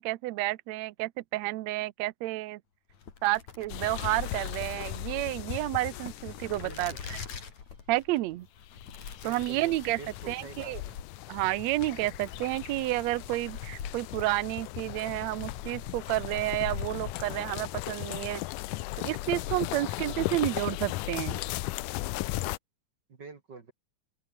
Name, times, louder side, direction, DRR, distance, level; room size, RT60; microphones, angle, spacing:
voice 1, 0.0-2.6 3.2-7.2 7.9-8.5 9.2-10.0 10.3-10.8 11.3-18.4 19.0-21.4, right 18 dB, 85° right, 1.5 m, -30 dB
sound 1, 2.9-17.8, left 6 dB, 55° left, 4.3 m, -44 dB
sound 2, 3.7-7.0 8.8-22.6, left 19 dB, 80° left, 2.0 m, -37 dB
sound 3, 4.0-10.8, right 2 dB, 20° right, 6.5 m, -68 dB
voice 2, 9.2-11.0 19.7-20.3 23.1-23.7, right 4 dB, 35° right, 2.1 m, -46 dB
open air
omnidirectional pair, 4.0 m